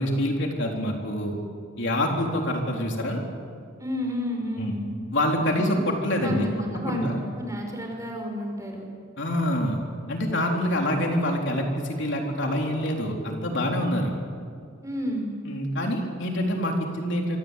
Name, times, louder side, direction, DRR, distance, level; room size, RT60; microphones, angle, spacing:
voice 1, 0.0-1.3 1.8-3.2 4.6-4.7 5.1-6.5 6.8-7.2 9.2-9.8 10.1-14.1 15.5-17.4, left 1 dB, 60° left, 1 dB, 3.9 m, -26 dB
voice 2, 3.8-4.9 5.5-5.8 6.2-8.9 14.8-15.4, equal, 15° right, 2 dB, 5.5 m, -31 dB
26.5 x 25.5 x 8.5 m, 2.1 s
head